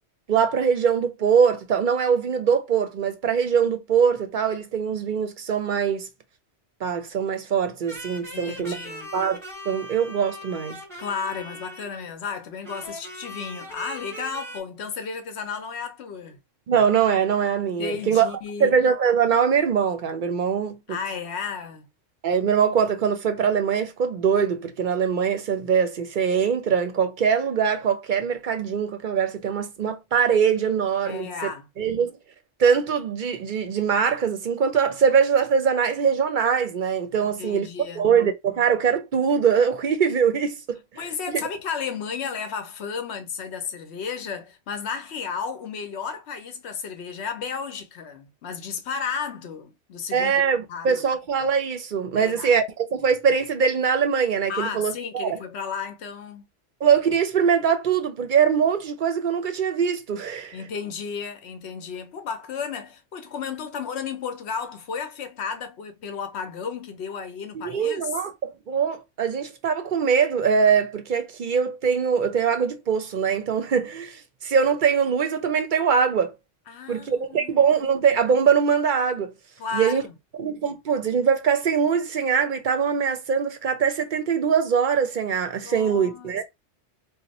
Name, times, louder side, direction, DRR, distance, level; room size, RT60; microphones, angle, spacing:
voice 1, 0.3-6.1 6.8-8.8 9.1-10.8 16.7-21.0 22.2-31.3 31.8-32.2 32.6-37.7 38.0-41.4 50.1-55.4 56.8-60.6 67.5-76.3 76.9-79.3 79.7-80.0 80.4-86.4, right 7 dB, 55° right, 0.6 m, -22 dB
sound 1, 7.9-12.1 12.6-14.6, equal, 5° left, 1.2 m, -40 dB
voice 2, 8.3-9.1 11.0-16.4 17.8-18.8 20.9-21.9 31.1-31.7 37.2-38.1 41.0-50.3 50.7-51.0 52.2-52.5 54.5-56.5 60.5-68.1 76.7-77.7 79.6-80.1 85.6-86.4, left 6 dB, 75° left, 1.0 m, -33 dB
2.8 x 2.0 x 4.0 m
omnidirectional pair, 1.2 m